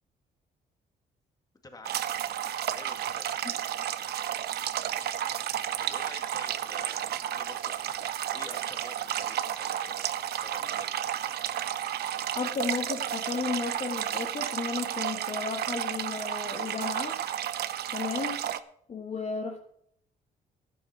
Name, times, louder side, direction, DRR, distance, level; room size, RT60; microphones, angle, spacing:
voice 1, 1.6-2.0 2.8-3.4 5.8-7.7 8.3-10.1 10.4-10.9 19.1-19.2, left 3 dB, 25° left, 5 dB, 2.2 m, -49 dB
sound 1, 1.9-18.6, right 10 dB, 75° right, 0.8 m, -32 dB
voice 2, 12.3-17.2 17.9-18.5 18.9-19.6, left 5 dB, 45° left, 3 dB, 1.4 m, -34 dB
12.0 x 10.0 x 5.6 m, 0.68 s
cardioid pair, 110°, 17 cm